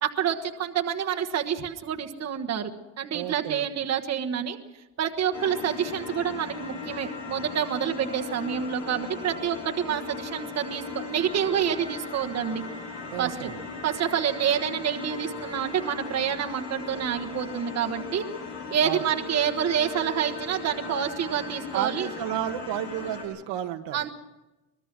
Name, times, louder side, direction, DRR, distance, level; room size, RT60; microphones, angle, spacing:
voice 1, 0.0-2.7 3.0-4.6 5.0-12.6 13.2-13.5 13.8-18.2 18.7-22.1 23.9-24.1, right 8 dB, 40° right, 3 dB, 1.4 m, -28 dB
voice 2, 3.1-3.6 13.1-13.6 18.8-19.1 20.8-21.0 21.7-24.1, right 11 dB, 90° right, 5 dB, 1.7 m, -32 dB
sound 1, 5.3-23.2, left 4 dB, 90° left, 6.3 m, -38 dB
25.0 x 20.5 x 6.1 m, 1.0 s
cardioid pair, 170°, 41 cm